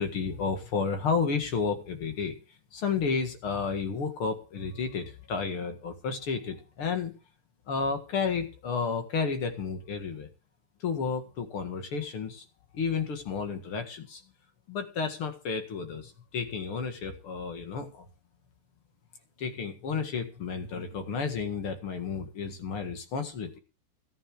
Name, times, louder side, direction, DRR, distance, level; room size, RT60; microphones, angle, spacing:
voice 1, 0.0-2.3 2.7-7.1 7.7-10.3 10.8-12.4 12.7-14.2 14.7-18.1 19.4-23.6, left 5 dB, 90° left, 6 dB, 2.7 m, -31 dB
13.5 x 9.7 x 4.9 m, 0.34 s
omnidirectional pair, 2.3 m